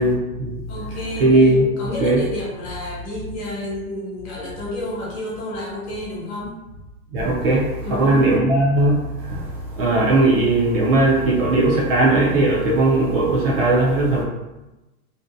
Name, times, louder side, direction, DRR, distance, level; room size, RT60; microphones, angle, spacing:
voice 1, 0.0-0.6 1.2-2.2 7.1-14.2, right 2 dB, 45° right, -3 dB, 0.4 m, -18 dB
voice 2, 0.7-1.4 1.8-6.6 7.8-8.3, left 1 dB, 45° left, -4 dB, 1.0 m, -30 dB
2.6 x 2.1 x 2.5 m, 1.0 s
supercardioid pair, 160°, 44 cm